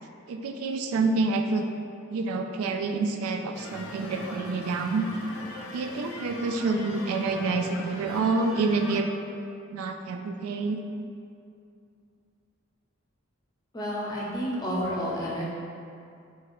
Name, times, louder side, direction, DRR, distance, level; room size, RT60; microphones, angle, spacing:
voice 1, 0.3-1.6 2.1-5.0 5.7-9.1 9.7-10.8, right 3 dB, 90° right, 5 dB, 0.3 m, -27 dB
sound 1, 3.5-9.0, left 2 dB, 75° left, 0.5 m, -40 dB
voice 2, 13.7-15.4, equal, 20° left, -5 dB, 0.5 m, -30 dB
3.8 x 3.1 x 3.0 m, 2.5 s
head